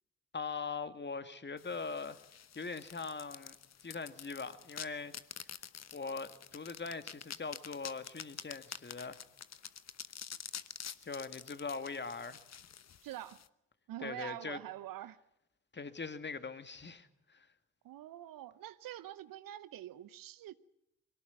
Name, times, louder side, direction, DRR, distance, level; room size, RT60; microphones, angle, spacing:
voice 1, 0.3-2.2 2.6-3.6 3.8-5.5 5.9-9.2 11.0-12.4 14.0-14.6 15.7-17.5, left 4 dB, 30° left, 2.1 m, -41 dB
sound 1, 1.6-13.5, left 8 dB, 45° left, 1.2 m, -48 dB
voice 2, 13.0-13.4 13.9-15.2 17.8-20.5, right 13 dB, 60° right, 0.9 m, -45 dB
23.0 x 17.5 x 9.4 m
hypercardioid pair, 45°, 37 cm